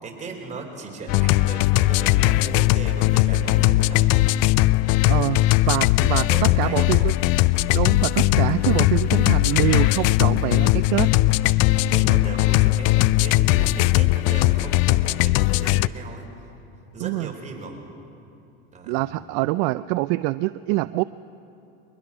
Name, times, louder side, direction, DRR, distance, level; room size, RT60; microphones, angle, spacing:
voice 1, 0.0-4.4 5.4-5.7 6.3-7.2 11.8-16.3 16.9-17.8 18.7-19.1, right 3 dB, 25° right, 0 dB, 4.5 m, -37 dB
sound 1, 1.1-15.9, left 17 dB, 55° left, 0.5 m, -19 dB
voice 2, 5.1-7.1 7.7-11.1 17.0-17.3 18.9-21.0, right 20 dB, 60° right, 15 dB, 0.5 m, -25 dB
22.5 x 20.5 x 6.1 m, 2.8 s
supercardioid pair, 115°, 31 cm